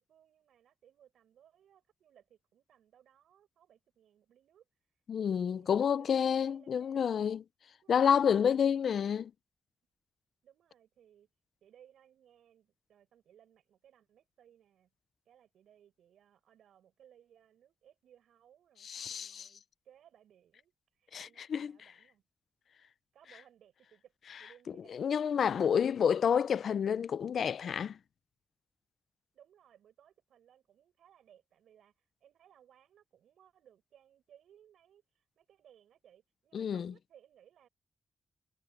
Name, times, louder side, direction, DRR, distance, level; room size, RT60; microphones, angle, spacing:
voice 1, 0.0-4.7 5.3-7.0 7.8-8.2 10.4-11.3 11.6-14.9 15.3-22.2 23.1-24.1 24.4-25.1 25.4-26.0 29.3-37.7, right 10 dB, 85° right, 7.6 m, -63 dB
voice 2, 5.1-7.4 7.9-9.3 18.8-19.5 21.1-21.7 24.9-28.0 36.5-36.9, left 7 dB, 75° left, 0.6 m, -29 dB
supercardioid pair, 50°, 0 cm